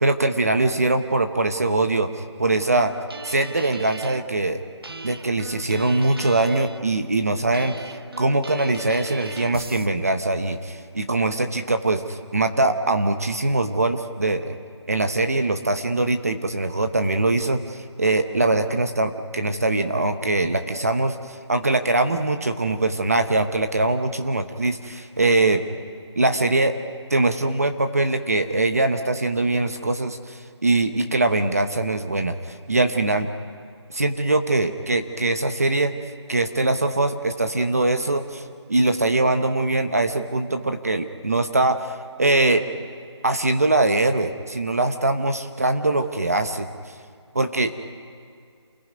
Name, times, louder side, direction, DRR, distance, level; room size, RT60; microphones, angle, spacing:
voice 1, 0.0-2.9 3.2-4.6 5.0-7.7 8.2-14.6 14.9-25.6 26.2-26.7 27.1-33.3 33.9-35.9 36.3-38.4 38.7-42.6 43.2-46.7 47.3-47.7, right 2 dB, 35° right, 7 dB, 0.9 m, -22 dB
sound 1, 2.8-4.3 4.8-6.9 7.5-9.9, right 3 dB, 55° right, 1.0 m, -38 dB
28.0 x 16.0 x 9.2 m, 2.3 s
figure-of-eight pair, 180°, 15 cm